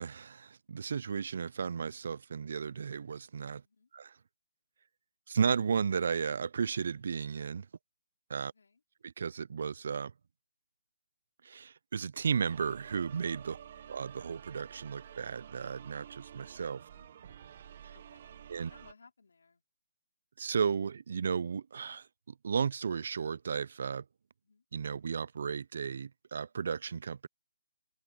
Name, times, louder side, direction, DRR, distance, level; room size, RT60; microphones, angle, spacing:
voice 1, 0.0-3.6 3.9-4.1 5.3-7.7 8.3-8.5 9.0-10.1 11.4-13.6 13.9-16.8 18.5-18.7 20.4-24.0 24.7-27.3, right 6 dB, 55° right, 0.3 m, -34 dB
voice 2, 8.4-8.8 13.5-13.8 16.9-17.4 17.9-19.6 24.4-24.6, left 4 dB, 80° left, 3.4 m, -62 dB
sound 1, 12.4-18.9, right 9 dB, 35° right, 0.8 m, -51 dB
open air
hypercardioid pair, 170°, 0 cm